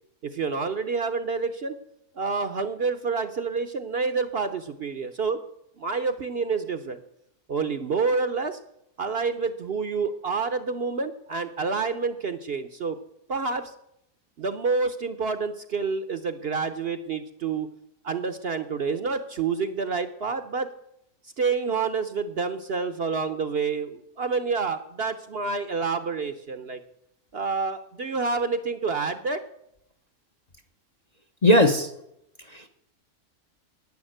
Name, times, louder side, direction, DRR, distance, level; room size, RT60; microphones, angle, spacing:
voice 1, 0.2-1.7 2.2-5.4 5.8-7.0 7.5-8.6 9.0-13.0 13.3-13.7 14.4-17.7 18.0-20.7 21.4-26.8 27.3-29.4, right 4 dB, 50° right, 9 dB, 0.8 m, -28 dB
voice 2, 31.4-31.9 32.5-32.7, left 1 dB, 35° left, 7 dB, 0.7 m, -18 dB
10.5 x 9.5 x 7.9 m, 0.78 s
omnidirectional pair, 1.6 m